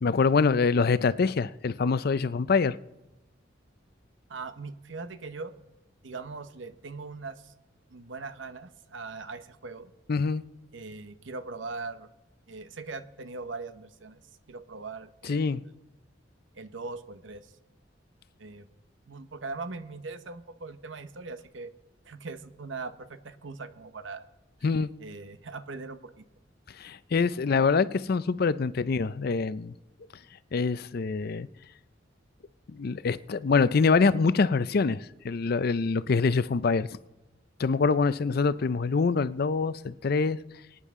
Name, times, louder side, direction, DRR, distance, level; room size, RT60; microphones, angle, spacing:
voice 1, 0.0-2.8 10.1-10.4 15.3-15.6 24.6-24.9 26.8-29.7 30.5-31.5 32.7-36.9 37.6-40.4, left 4 dB, 55° left, 0.5 m, -25 dB
voice 2, 4.3-5.5 6.0-7.5 7.9-9.9 10.7-12.1 12.5-14.2 14.5-15.4 16.5-17.5 18.4-18.7 19.1-21.7 22.0-24.3 24.6-24.7 25.0-26.2, right 3 dB, 75° right, 0.9 m, -40 dB
23.5 x 9.8 x 3.7 m
head